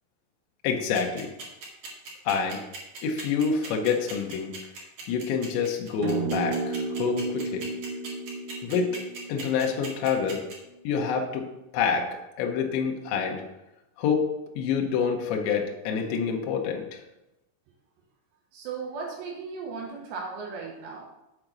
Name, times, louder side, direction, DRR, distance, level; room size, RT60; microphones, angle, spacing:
voice 1, 0.6-1.3 2.3-2.6 3.0-4.5 5.1-7.7 8.6-8.9 9.3-10.4 10.8-11.5 11.7-12.1 12.4-13.4 14.0-14.3 14.6-17.0, left 6 dB, 75° left, 1 dB, 2.8 m, -27 dB
sound 1, 0.9-10.5, right 4 dB, 50° right, 2.5 m, -39 dB
sound 2, 6.0-10.6, right 4 dB, 90° right, 3.4 m, -33 dB
voice 2, 18.5-21.0, right 5 dB, 70° right, -2 dB, 3.0 m, -36 dB
7.8 x 5.2 x 6.0 m, 0.95 s
omnidirectional pair, 6.0 m